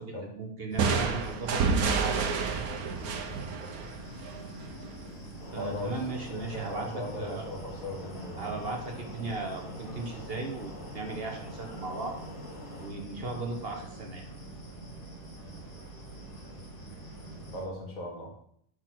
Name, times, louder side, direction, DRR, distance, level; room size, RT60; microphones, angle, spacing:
voice 1, 0.0-2.3 5.5-7.4 8.4-12.1 12.8-14.2, right 3 dB, 45° right, 2 dB, 1.1 m, -37 dB
sound 1, 0.7-17.6, right 2 dB, 25° left, 1.6 m, -45 dB
sound 2, 0.8-4.5, right 5 dB, 80° right, 1.3 m, -29 dB
sound 3, 5.4-12.9, left 1 dB, 85° left, 2.3 m, -46 dB
voice 2, 5.6-5.9 6.3-8.5 17.5-18.3, left 1 dB, 70° left, -1 dB, 2.5 m, -38 dB
6.3 x 4.7 x 5.9 m, 0.67 s
omnidirectional pair, 1.6 m